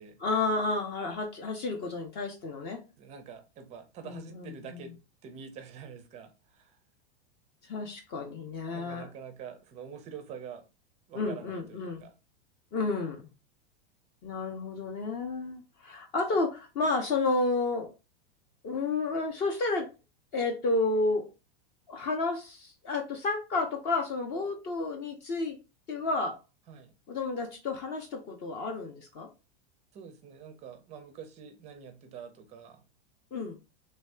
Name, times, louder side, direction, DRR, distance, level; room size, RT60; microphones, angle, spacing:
voice 1, 0.2-2.8 4.0-4.8 7.6-9.1 11.1-12.1 12.7-13.2 14.2-17.9 18.6-19.9 20.3-21.3 21.9-25.6 25.9-26.4 27.1-29.3 33.3-33.6, left 3 dB, 30° left, 0.5 m, -31 dB
voice 2, 3.0-6.8 8.7-10.7 11.1-12.1 26.7-26.9 29.9-32.8, right 7 dB, 20° right, 0.4 m, -46 dB
3.2 x 2.6 x 3.3 m
supercardioid pair, 155°, 34 cm